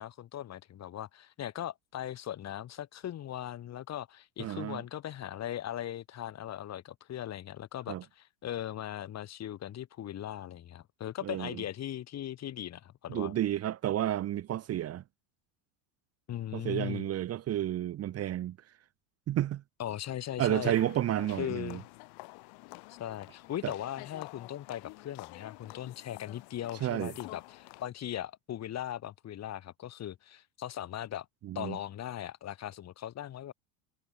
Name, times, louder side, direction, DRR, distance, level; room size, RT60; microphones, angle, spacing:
voice 1, 0.0-13.4 16.3-17.1 19.8-20.8 21.4-21.9 22.9-31.3 31.6-33.5, left 11 dB, 40° left, 3.7 m, -39 dB
voice 2, 4.4-4.8 7.9-8.0 11.2-11.5 13.1-15.0 16.5-18.6 19.3-19.6 20.4-21.8 23.6-23.7 26.8-27.1 31.4-31.8, right 12 dB, 35° right, 1.3 m, -31 dB
sound 1, 20.6-27.9, left 29 dB, 65° left, 6.0 m, -49 dB
supercardioid pair, 125°, 42 cm